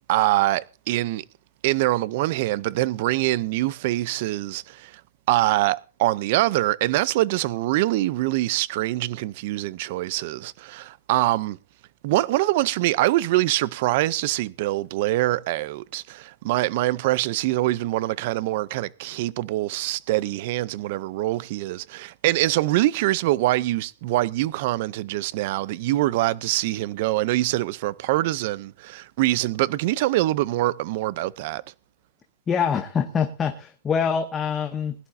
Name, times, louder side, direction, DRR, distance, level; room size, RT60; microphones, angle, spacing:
voice 1, 0.1-1.2 1.6-5.0 5.3-11.6 12.0-31.6, right 17 dB, 40° right, 0.5 m, -24 dB
voice 2, 32.5-34.9, left 7 dB, 15° left, 0.8 m, -25 dB
20.5 x 11.5 x 2.6 m
supercardioid pair, 165°, 0 cm